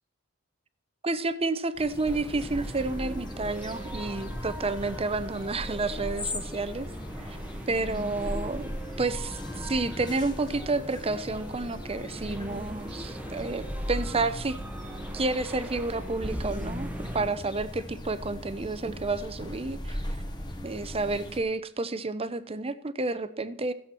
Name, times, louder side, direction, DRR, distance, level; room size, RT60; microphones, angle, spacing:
voice 1, 1.0-6.9 7.3-7.4 7.7-14.6 15.1-16.9 17.1-20.0 20.6-23.7, right 3 dB, 30° right, 14 dB, 0.8 m, -30 dB
sound 1, 1.8-21.4, left 1 dB, 20° left, 1.5 m, -41 dB
sound 2, 2.1-17.3, equal, 5° right, 1.3 m, -38 dB
16.0 x 7.9 x 6.0 m, 0.72 s
head